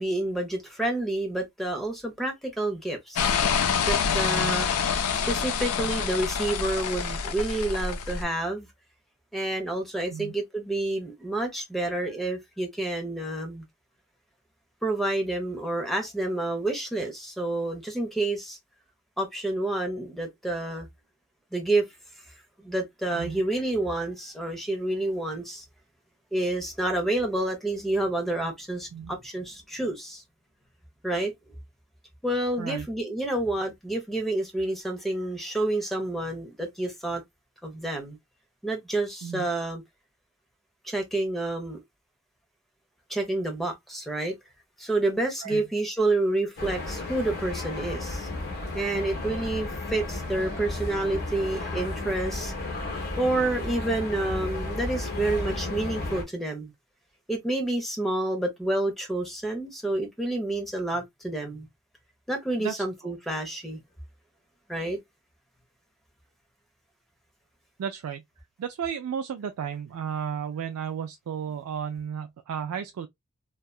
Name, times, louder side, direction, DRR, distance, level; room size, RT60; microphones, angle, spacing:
voice 1, 0.0-3.3 3.9-4.7 5.3-8.7 9.3-13.6 14.8-18.6 19.2-20.9 21.5-21.8 22.6-25.6 26.3-30.2 31.0-31.3 32.2-37.2 37.6-38.2 38.6-39.8 40.8-41.8 43.1-44.3 44.8-48.3 48.7-52.5 53.2-56.7 57.3-61.7 62.3-63.8 64.7-65.0, right 2 dB, ahead, 0.7 m, -29 dB
sound 1, 3.2-8.2, left 6 dB, 75° left, 0.5 m, -26 dB
voice 2, 4.3-4.6 10.1-10.3 23.1-23.4 28.9-29.1 32.6-32.9 39.2-39.5 45.4-45.6 62.6-63.1 67.8-68.2 68.6-73.1, right 8 dB, 75° right, 0.3 m, -34 dB
sound 2, 46.6-56.2, left 2 dB, 45° left, 0.9 m, -33 dB
2.7 x 2.3 x 2.3 m
head